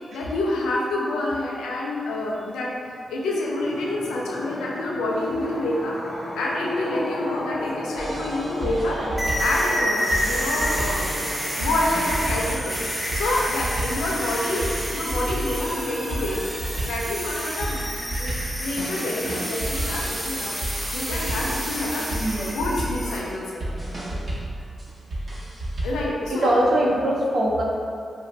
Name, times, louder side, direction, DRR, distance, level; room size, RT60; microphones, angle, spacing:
voice 1, 0.1-2.7 3.1-6.0 6.4-9.0 9.4-11.2 11.6-12.8 13.1-16.5 16.8-17.9 18.2-18.3 18.6-22.1 22.5-23.6 25.8-26.6, left 2 dB, 90° left, -3 dB, 0.4 m, -27 dB
sound 1, 3.6-22.4, equal, 45° left, 0.8 m, -38 dB
sound 2, 8.0-26.1, right 1 dB, 50° right, 1.0 m, -32 dB
voice 2, 8.6-9.3 10.3-10.8 11.6-11.7 19.7-20.1 22.1-22.6 23.7-23.8 25.3-25.4 26.3-27.6, right 1 dB, 65° right, -2 dB, 0.5 m, -25 dB
sound 3, 9.2-23.2, equal, 10° right, 0.8 m, -29 dB
2.5 x 2.1 x 3.9 m, 2.4 s
supercardioid pair, 45°, 0 cm